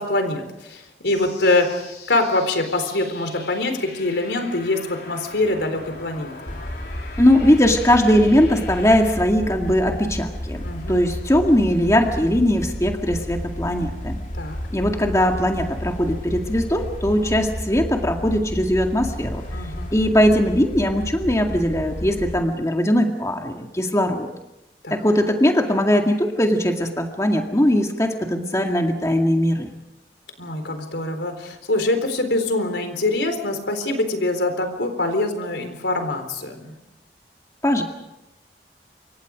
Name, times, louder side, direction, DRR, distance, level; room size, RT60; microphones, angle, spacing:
voice 1, 0.0-6.5 10.6-11.0 14.4-14.6 19.5-20.0 24.8-25.0 30.4-36.7, left 2 dB, 85° left, 6 dB, 4.0 m, -24 dB
sound 1, 1.0-9.2, left 4 dB, 60° left, 4.2 m, -41 dB
sound 2, 6.5-22.4, equal, 45° left, 2.8 m, -32 dB
voice 2, 7.2-10.6 10.9-14.2 14.7-19.4 19.9-24.3 24.9-29.7 37.6-37.8, equal, 20° left, 3 dB, 2.0 m, -20 dB
28.0 x 25.0 x 5.1 m, 0.91 s
head